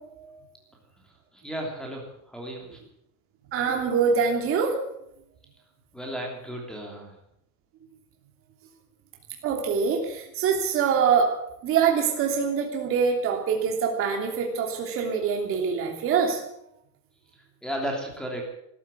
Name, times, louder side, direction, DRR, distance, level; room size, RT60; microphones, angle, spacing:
voice 1, 0.1-0.4 3.5-4.8 9.4-11.3 11.6-16.4, right 6 dB, 30° right, 2 dB, 3.0 m, -24 dB
voice 2, 1.3-2.8 5.9-7.1 17.3-18.4, equal, ahead, 0 dB, 3.0 m, -34 dB
13.5 x 13.0 x 8.3 m, 0.77 s
supercardioid pair, 160°, 46 cm